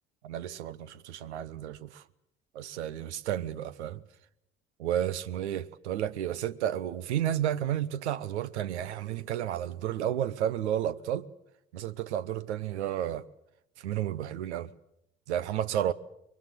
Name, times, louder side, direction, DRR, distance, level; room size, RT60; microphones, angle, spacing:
voice 1, 0.2-2.0 2.5-4.0 4.8-11.3 11.7-13.2 13.8-14.7 15.3-15.9, right 11 dB, 80° right, 0.9 m, -32 dB
24.0 x 22.5 x 7.7 m
hypercardioid pair, 60°, 33 cm